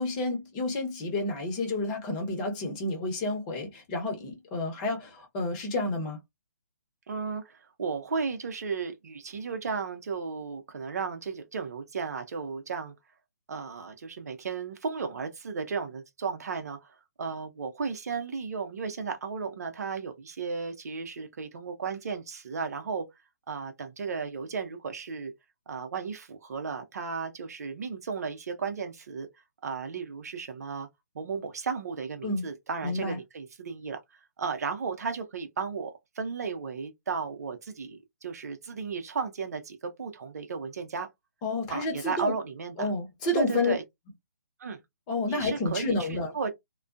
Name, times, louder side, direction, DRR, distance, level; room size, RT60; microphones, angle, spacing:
voice 1, 0.0-6.2 32.2-32.5 32.8-33.2 41.4-42.4 42.8-43.7 45.1-46.4, left 2 dB, 25° left, 1.0 m, -30 dB
voice 2, 7.1-12.9 13.5-23.0 23.5-25.3 25.7-29.3 29.6-30.9 31.1-34.0 34.4-41.1 41.7-42.9 43.3-43.8 44.6-44.8 45.3-46.5, right 5 dB, 60° right, 0.7 m, -34 dB
2.3 x 2.2 x 2.5 m
figure-of-eight pair, 140°, 10 cm